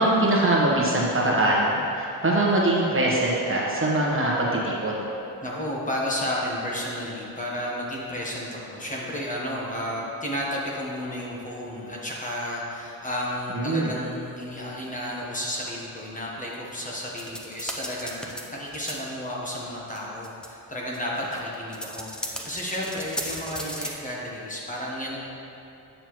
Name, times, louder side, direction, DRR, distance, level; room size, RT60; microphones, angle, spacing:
voice 1, 0.0-5.1 13.5-13.9, right 1 dB, 35° right, -4 dB, 1.2 m, -22 dB
voice 2, 5.4-18.2 18.5-25.2, equal, 20° left, -4 dB, 1.2 m, -32 dB
sound 1, 17.2-18.4 18.7-18.9 19.6-19.7 19.9-20.0 20.2-20.5 20.9-23.9, equal, ahead, 0.6 m, -34 dB
9.1 x 6.7 x 3.1 m, 2.8 s
wide cardioid pair, 120°, 36 cm